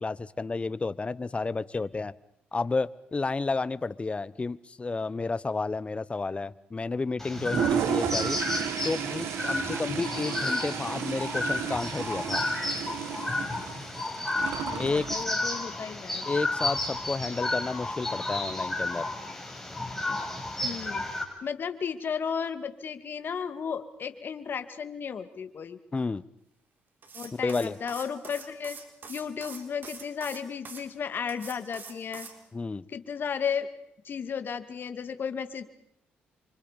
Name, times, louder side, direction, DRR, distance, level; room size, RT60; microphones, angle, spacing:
voice 1, 0.0-2.1 2.5-8.4 8.8-12.4 14.8-15.1 16.3-19.1 25.9-26.2 27.3-27.8 32.5-32.8, left 3 dB, 30° left, 18 dB, 1.1 m, -31 dB
sound 1, 7.2-21.2, left 2 dB, 10° left, 6.9 m, -32 dB
Toilet flush, 7.4-15.2, right 10 dB, 75° right, 1.6 m, -33 dB
voice 2, 14.3-16.3 20.6-21.0 21.4-25.8 27.1-28.8 29.1-32.3 32.9-33.7 34.0-35.6, left 7 dB, 55° left, 9 dB, 2.5 m, -34 dB
sound 2, 27.0-30.8 31.3-32.4, right 4 dB, 50° right, 4.6 m, -44 dB
29.0 x 25.5 x 5.4 m, 0.73 s
supercardioid pair, 65°, 4 cm